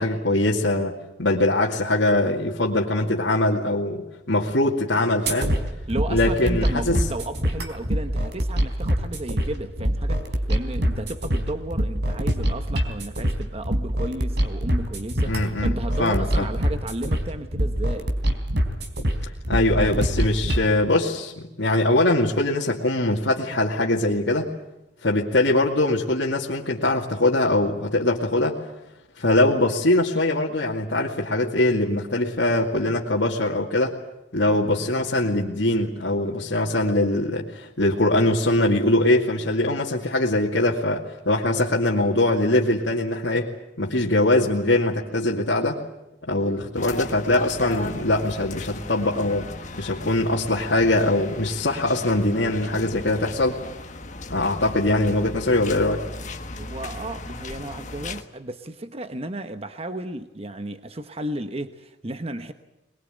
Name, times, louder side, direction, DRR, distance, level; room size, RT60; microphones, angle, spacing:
voice 1, 0.0-5.5 6.1-7.0 15.3-16.5 19.5-24.5 25.0-28.5 29.2-33.9 34.3-43.5 43.8-45.8 46.2-49.5 49.8-53.6 54.3-56.0, left 1 dB, 70° left, -4 dB, 2.3 m, -22 dB
sound 1, 5.3-20.7, equal, 65° right, 3.7 m, -25 dB
voice 2, 5.9-18.1 56.6-62.5, right 1 dB, 35° right, 9 dB, 1.1 m, -33 dB
sound 2, 46.7-58.2, left 2 dB, 40° left, 1.5 m, -36 dB
22.5 x 22.0 x 9.2 m, 0.92 s
head